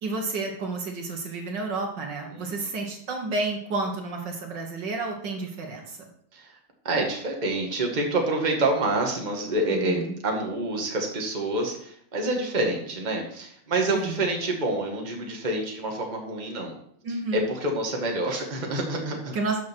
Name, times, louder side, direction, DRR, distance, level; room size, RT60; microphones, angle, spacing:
voice 1, 0.0-6.0 9.7-10.1 13.9-14.3 17.0-17.5 19.3-19.6, right 3 dB, 65° right, 2 dB, 2.0 m, -30 dB
voice 2, 2.3-2.7 6.3-6.5 6.8-16.7 17.3-19.3, right 2 dB, 25° right, 1 dB, 1.8 m, -27 dB
12.0 x 6.4 x 4.5 m, 0.67 s
omnidirectional pair, 2.1 m